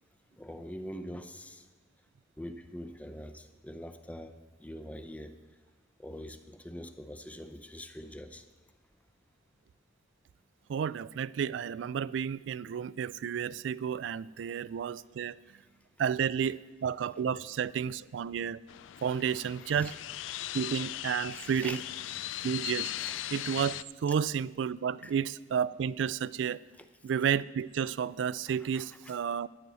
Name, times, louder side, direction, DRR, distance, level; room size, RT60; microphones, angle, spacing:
voice 1, 0.4-1.6 2.4-4.3 4.6-5.3 6.0-8.5 19.6-19.9 21.3-21.8 23.0-23.1 25.0-25.1 28.6-29.1, equal, 10° left, 9 dB, 0.6 m, -44 dB
voice 2, 10.7-15.4 16.0-18.6 19.0-19.9 20.5-21.8 22.4-22.9 23.3-26.6 27.0-29.5, right 7 dB, 70° right, 19 dB, 0.3 m, -31 dB
sound 1, 18.7-23.8, left 13 dB, 80° left, 0.3 m, -38 dB
14.0 x 10.5 x 4.1 m, 1.3 s
head